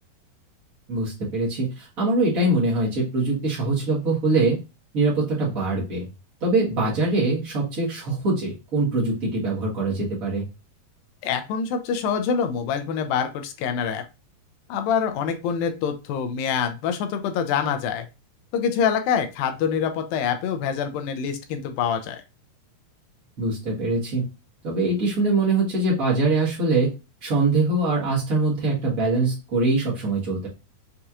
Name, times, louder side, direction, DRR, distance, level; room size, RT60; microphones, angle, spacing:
voice 1, 0.9-4.6 4.9-6.1 6.4-10.4 23.4-24.2 24.6-26.9 27.2-30.5, right 2 dB, 85° right, -6 dB, 0.7 m, -23 dB
voice 2, 11.2-14.0 14.7-18.1 18.5-22.2, left 7 dB, 85° left, 7 dB, 2.4 m, -25 dB
6.4 x 2.4 x 2.8 m, 0.28 s
omnidirectional pair, 4.0 m